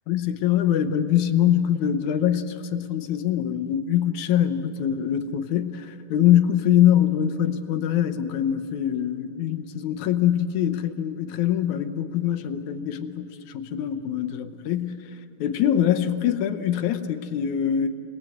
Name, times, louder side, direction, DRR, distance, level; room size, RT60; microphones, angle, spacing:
voice 1, 0.1-15.0 15.4-17.9, left 10 dB, 70° left, 9 dB, 1.9 m, -23 dB
28.0 x 21.0 x 7.9 m, 2.9 s
omnidirectional pair, 4.3 m